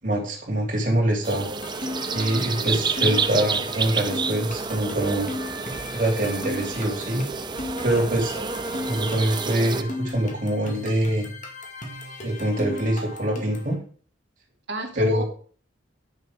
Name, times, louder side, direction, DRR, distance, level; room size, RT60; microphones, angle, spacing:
voice 1, 0.0-1.5 2.1-5.3 5.9-7.2 7.8-8.3 8.9-11.2 12.2-13.8 15.0-15.2, right 1 dB, 45° right, -1 dB, 3.2 m, -24 dB
sound 1, 1.2-9.8, right 5 dB, 25° right, 0.5 m, -29 dB
sound 2, 1.4-13.7, left 1 dB, 40° left, 2.2 m, -36 dB
voice 2, 7.5-8.1 14.7-15.2, equal, 60° right, 2 dB, 2.4 m, -32 dB
10.0 x 6.6 x 5.1 m, 0.43 s
head